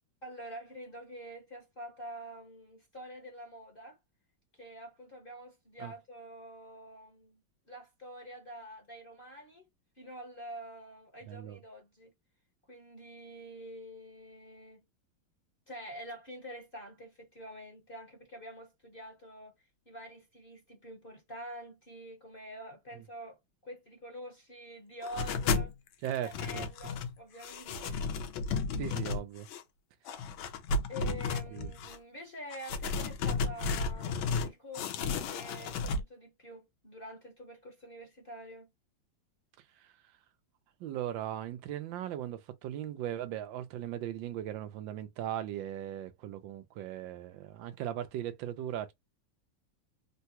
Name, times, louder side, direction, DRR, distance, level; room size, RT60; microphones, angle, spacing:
voice 1, 0.2-4.0 4.6-7.4 7.7-9.7 10.0-12.1 12.7-14.8 15.7-25.7 26.2-28.0 30.9-38.7, equal, 35° left, 0.9 m, -47 dB
voice 2, 11.3-11.6 26.0-26.7 28.8-29.5 31.5-31.7 39.8-39.9 40.8-48.9, right 11 dB, 80° right, 1.3 m, -38 dB
sound 1, 25.0-25.7 26.1-27.1 27.4-29.6 30.1-32.0 32.5-34.5 34.7-36.0, left 4 dB, 90° left, 1.5 m, -33 dB
3.8 x 2.2 x 2.7 m
omnidirectional pair, 2.1 m